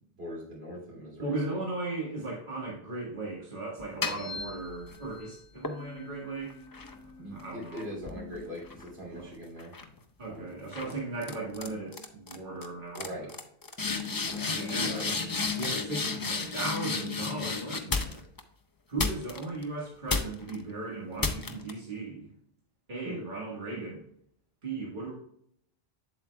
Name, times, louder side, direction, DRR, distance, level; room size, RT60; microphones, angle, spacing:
voice 1, 0.1-1.6 7.2-9.7 10.3-11.0 12.9-13.3 14.3-15.1 23.0-23.3, equal, 80° right, -4 dB, 3.1 m, -42 dB
voice 2, 1.2-6.6 7.3-7.8 9.1-9.3 10.2-13.3 14.5-15.2 15.5-18.2 18.9-22.3 22.9-24.1 24.6-25.1, right 2 dB, 50° right, -5 dB, 1.7 m, -37 dB
sound 1, 3.8-5.0 5.6-9.2 9.6-10.0 10.7-10.9 11.2-11.7 11.9-12.3 12.6-12.7 12.9-18.4 19.0-19.6 20.1-20.6 21.2-21.7, left 4 dB, 30° left, 0.4 m, -33 dB
7.7 x 7.6 x 2.2 m, 0.69 s
omnidirectional pair, 1.0 m